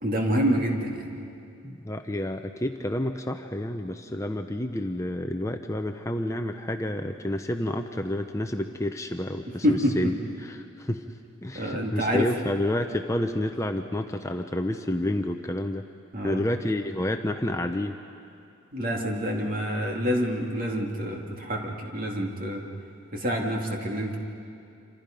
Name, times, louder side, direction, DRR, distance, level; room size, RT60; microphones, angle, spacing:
voice 1, 0.0-1.1 9.6-9.9 11.5-12.3 16.1-16.4 18.7-22.6 23.1-24.2, equal, 40° right, 0 dB, 2.5 m, -27 dB
voice 2, 1.6-11.0 11.4-15.9 16.2-18.0, left 1 dB, 15° left, 5 dB, 0.6 m, -29 dB
27.5 x 26.5 x 5.3 m, 2.6 s
head